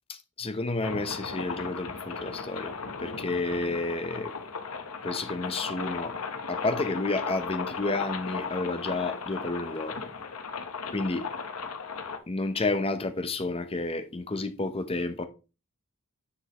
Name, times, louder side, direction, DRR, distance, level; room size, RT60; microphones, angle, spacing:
voice 1, 0.1-2.7 3.0-4.3 5.0-6.1 6.5-10.0 10.9-11.3 12.3-15.3, left 2 dB, 25° left, 0.8 m, -30 dB
sound 1, 0.8-12.2, left 5 dB, 80° left, 1.0 m, -36 dB
9.6 x 5.2 x 3.0 m
head